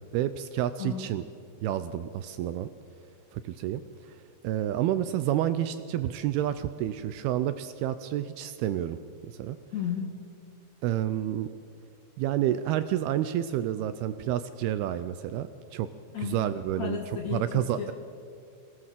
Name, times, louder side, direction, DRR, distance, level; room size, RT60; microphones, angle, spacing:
voice 1, 0.1-1.2 1.6-2.7 3.3-3.8 4.1-4.2 4.4-9.6 10.8-11.5 12.2-15.9 16.3-17.0 17.3-17.9, right 11 dB, 80° right, 12 dB, 2.4 m, -29 dB
voice 2, 9.7-10.1 16.1-17.9, left 8 dB, 60° left, 3 dB, 2.1 m, -34 dB
22.0 x 17.5 x 7.5 m, 2.3 s
omnidirectional pair, 4.9 m